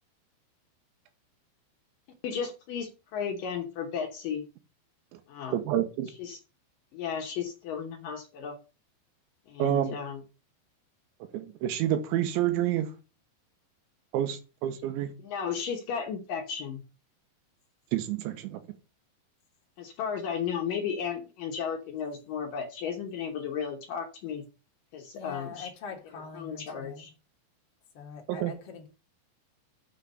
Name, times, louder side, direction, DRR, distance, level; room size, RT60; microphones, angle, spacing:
voice 1, 2.2-4.4 5.3-5.6 6.2-6.4 6.9-8.6 9.5-10.2 15.2-16.8 19.8-24.4 24.9-25.7 26.3-27.1, left 7 dB, 70° left, 2.1 m, -34 dB
voice 2, 5.5-6.1 9.6-10.0 11.3-12.9 14.1-15.1 17.9-18.6 28.3-28.5, right 11 dB, 85° right, 3.3 m, -28 dB
voice 3, 25.1-27.1 27.9-28.9, left 6 dB, 55° left, 1.7 m, -43 dB
7.2 x 5.8 x 6.6 m
omnidirectional pair, 5.3 m